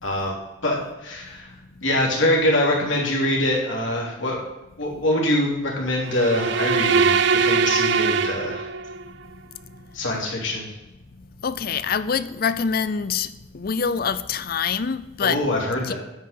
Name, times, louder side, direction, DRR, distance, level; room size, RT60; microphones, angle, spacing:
voice 1, 0.0-0.3 0.6-1.5 1.8-4.4 4.8-8.7 9.9-10.7 15.2-15.9, left 1 dB, 75° left, 3.1 m, -24 dB
sound 1, 6.1-9.1, right 5 dB, 60° right, 0.4 m, -21 dB
voice 2, 11.4-13.3 13.5-15.9, left 6 dB, 50° left, 0.5 m, -25 dB
9.9 x 5.6 x 6.9 m
head